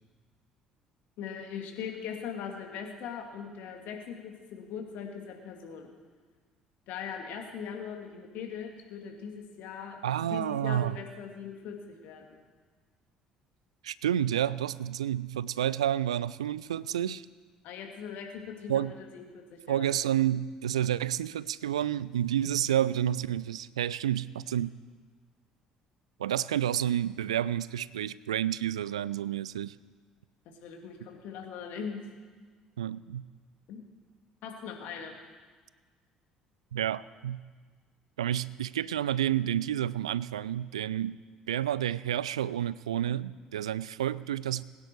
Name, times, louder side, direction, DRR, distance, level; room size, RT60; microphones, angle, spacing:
voice 1, 1.2-5.9 6.9-12.4 17.6-19.9 30.6-32.0 33.7-33.8 34.4-35.2, left 7 dB, 60° left, 2 dB, 2.3 m, -40 dB
voice 2, 10.0-11.0 13.8-17.2 18.7-18.9 19.7-24.7 26.2-29.7 32.8-33.2 36.7-37.4 38.2-41.2 41.5-44.6, right 11 dB, 75° right, 19 dB, 0.3 m, -30 dB
21.0 x 9.6 x 4.7 m, 1.5 s
figure-of-eight pair, 55°, 3 cm